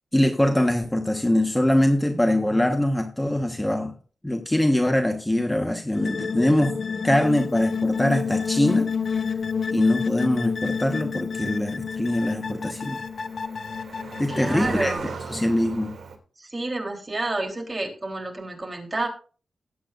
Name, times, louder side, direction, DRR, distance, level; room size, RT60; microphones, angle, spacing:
voice 1, 0.1-3.9 4.2-6.8 7.0-9.2 9.7-13.0 14.2-14.9 15.3-15.9, left 1 dB, 10° left, 4 dB, 1.3 m, -23 dB
sound 1, 5.9-14.6, left 6 dB, 55° left, 0.8 m, -29 dB
Cricket, 7.3-16.2, right 5 dB, 80° right, 2.7 m, -40 dB
voice 2, 14.3-15.0 16.4-19.1, right 2 dB, 25° right, 1 dB, 3.6 m, -29 dB
20.0 x 8.6 x 2.6 m, 0.39 s
cardioid pair, 85°, 0 cm